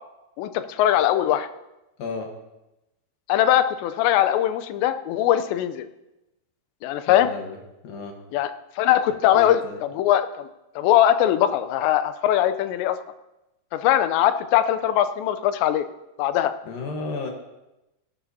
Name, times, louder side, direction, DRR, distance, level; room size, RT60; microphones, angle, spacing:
voice 1, 0.4-1.5 3.3-5.9 6.8-7.3 8.3-10.4 10.8-13.0 13.7-15.9 16.2-16.5, left 11 dB, 85° left, 11 dB, 2.8 m, -21 dB
voice 2, 2.0-2.3 7.1-7.6 7.8-8.1 9.3-9.8 16.6-17.3, left 3 dB, 65° left, 2 dB, 2.7 m, -33 dB
18.0 x 12.0 x 2.7 m, 0.96 s
omnidirectional pair, 5.0 m